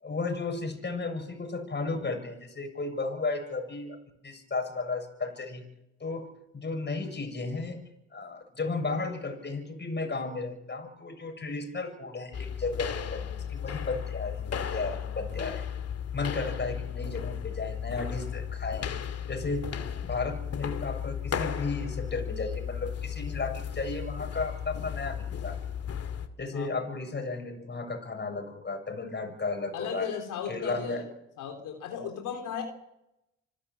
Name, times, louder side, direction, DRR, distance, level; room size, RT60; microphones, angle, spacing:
voice 1, 0.0-4.0 4.2-5.7 6.0-6.3 6.5-7.8 8.1-15.7 16.1-18.9 19.3-19.7 20.0-25.6 26.4-30.1 30.5-31.0, left 3 dB, 35° left, 6 dB, 7.0 m, -34 dB
sound 1, 12.3-26.3, left 8 dB, 50° left, 2.3 m, -35 dB
voice 2, 29.7-31.0 31.4-32.6, left 7 dB, 80° left, 3 dB, 3.5 m, -35 dB
27.0 x 13.5 x 8.5 m, 0.86 s
supercardioid pair, 70°, 31 cm